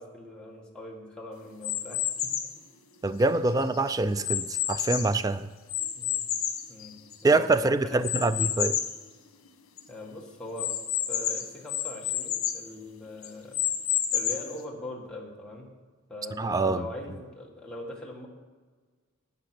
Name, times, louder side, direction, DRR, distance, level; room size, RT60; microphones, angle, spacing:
voice 1, 0.0-2.3 6.0-6.3 6.7-6.9 7.2-8.7 9.9-10.8 11.1-13.6 14.1-15.7 16.1-18.3, left 1 dB, 5° left, -3 dB, 1.6 m, -41 dB
sound 1, 1.6-2.6 3.2-5.2 5.7-7.4 8.0-9.0 9.5-9.6 9.8-9.9 10.6-12.7 13.2-14.6, left 10 dB, 75° left, 1.3 m, -30 dB
voice 2, 3.0-5.5 7.2-8.8 16.4-16.9, right 3 dB, 15° right, 13 dB, 0.3 m, -25 dB
11.5 x 7.9 x 6.0 m, 1.5 s
head